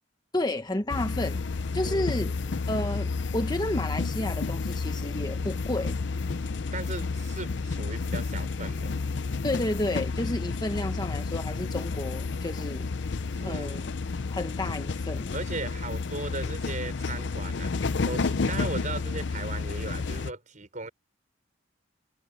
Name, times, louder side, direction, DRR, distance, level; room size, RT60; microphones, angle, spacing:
voice 1, 0.3-1.4 1.7-2.3 2.7-6.0 9.4-12.9 13.4-13.9 14.3-15.3, left 1 dB, 20° left, 1.2 m, -31 dB
sound 1, 0.9-20.3, left 4 dB, 65° left, 0.6 m, -31 dB
voice 2, 1.8-2.6 6.7-8.9 13.3-13.9 15.3-20.9, right 3 dB, 40° right, 5.4 m, -38 dB
head